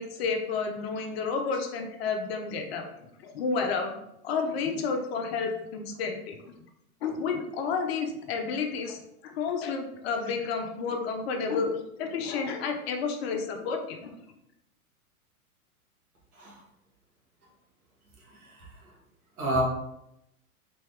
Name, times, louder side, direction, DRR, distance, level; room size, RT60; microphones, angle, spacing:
voice 1, 0.0-3.9 4.2-6.5 7.0-14.1, left 5 dB, 45° left, 4 dB, 0.7 m, -31 dB
voice 2, 16.4-16.6 18.4-18.7 19.4-19.6, right 1 dB, 75° right, -2 dB, 1.7 m, -29 dB
4.3 x 3.4 x 3.4 m, 0.82 s
figure-of-eight pair, 105°, 44 cm